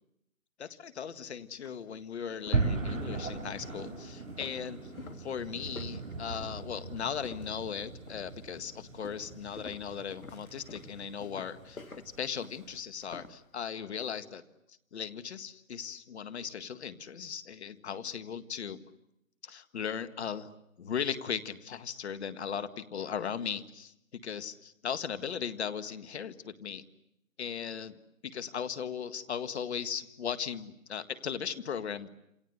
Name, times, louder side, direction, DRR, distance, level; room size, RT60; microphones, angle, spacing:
voice 1, 0.6-4.8 5.2-11.8 12.2-14.4 14.9-18.8 19.4-20.5 20.8-26.8 27.4-28.0 28.2-32.1, left 7 dB, 50° left, 11 dB, 1.8 m, -37 dB
sound 1, 1.1-1.2 1.6-1.8 2.2-7.7 8.1-8.5 9.0-13.4, left 3 dB, 85° left, 2.4 m, -49 dB
sound 2, 2.5-12.8, right 3 dB, 60° right, 5.5 m, -38 dB
28.0 x 26.5 x 8.1 m, 0.82 s
figure-of-eight pair, 145°, 41 cm